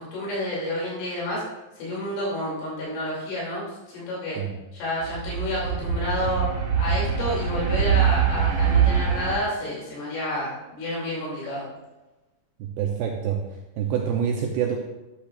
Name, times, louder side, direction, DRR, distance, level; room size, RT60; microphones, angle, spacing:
voice 1, 0.0-1.4 1.8-4.4 4.7-6.5 6.8-11.7, left 1 dB, 80° left, -6 dB, 5.3 m, -29 dB
sound 1, 5.0-9.3, right 8 dB, 60° right, 1.9 m, -23 dB
voice 2, 12.6-13.4 13.8-14.8, right 8 dB, 85° right, 1 dB, 2.5 m, -26 dB
12.0 x 9.9 x 2.5 m, 1.1 s
omnidirectional pair, 5.6 m